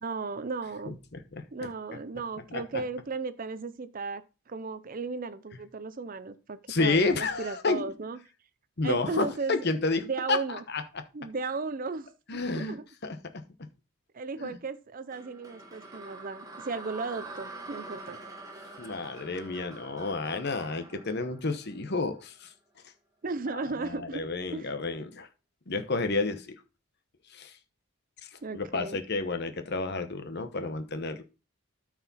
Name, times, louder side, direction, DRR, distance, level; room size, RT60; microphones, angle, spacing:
voice 1, 0.0-1.0 1.5-8.2 8.8-9.7 10.0-10.6 11.1-12.8 14.1-18.2 23.2-24.2 24.5-24.8 28.4-29.0, right 4 dB, 40° right, 0.5 m, -35 dB
voice 2, 0.9-1.7 2.5-2.8 6.7-7.9 8.8-11.0 12.3-12.8 13.0-13.7 14.4-14.6 18.8-22.5 23.5-25.3 25.7-26.5 27.3-27.5 28.2-31.2, left 3 dB, 45° left, 1.0 m, -31 dB
sound 1, 15.1-22.3, right 2 dB, 15° right, 1.4 m, -45 dB
13.0 x 4.9 x 4.1 m
head